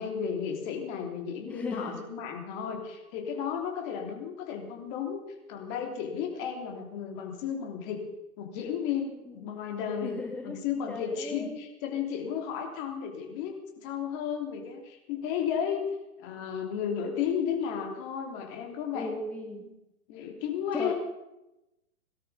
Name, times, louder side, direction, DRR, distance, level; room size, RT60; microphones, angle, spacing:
voice 1, 0.0-5.2 5.5-8.0 8.4-10.2 10.4-15.9 16.2-19.2 19.6-19.7 20.1-20.9, left 8 dB, 35° left, 2 dB, 3.3 m, -33 dB
voice 2, 1.4-2.1 9.3-9.6 10.0-11.7 18.9-19.6 20.7-20.9, left 2 dB, 5° left, 4 dB, 0.6 m, -37 dB
18.0 x 12.5 x 5.6 m, 0.96 s
hypercardioid pair, 120°, 42 cm